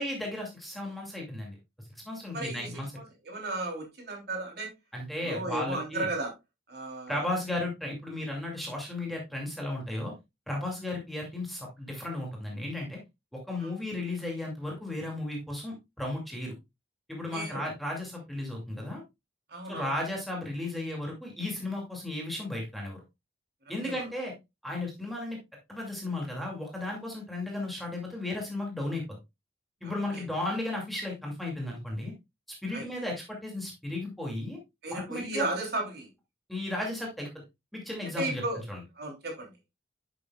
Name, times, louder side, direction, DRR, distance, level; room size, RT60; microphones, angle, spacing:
voice 1, 0.0-1.6 2.1-2.9 4.9-6.1 7.1-10.1 10.5-13.0 13.3-16.5 17.1-19.0 19.7-23.0 23.7-24.3 24.6-25.4 25.7-29.2 29.8-32.1 32.6-34.6 34.9-35.5 36.5-37.3 37.7-38.4 38.7-38.8, left 1 dB, ahead, 2.4 m, -34 dB
voice 2, 2.3-4.7 5.2-6.3 6.7-7.3 13.6-13.7 17.3-17.7 19.5-19.9 23.8-24.0 29.8-30.2 32.7-33.0 34.8-36.1 38.2-38.6 39.0-39.5, right 2 dB, 55° right, 3.1 m, -35 dB
10.5 x 6.8 x 2.3 m
head